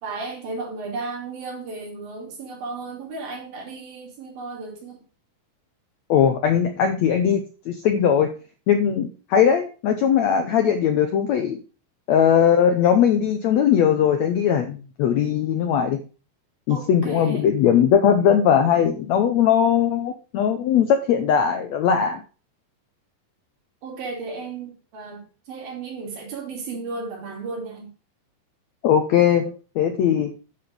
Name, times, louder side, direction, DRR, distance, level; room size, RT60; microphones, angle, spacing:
voice 1, 0.0-5.0 16.7-17.4 23.8-27.9, right 3 dB, 80° right, -1 dB, 4.8 m, -34 dB
voice 2, 6.1-8.3 8.7-11.6 12.1-16.0 16.7-22.2 28.8-30.3, left 8 dB, 75° left, 6 dB, 1.6 m, -19 dB
9.9 x 6.0 x 5.1 m, 0.36 s
omnidirectional pair, 4.1 m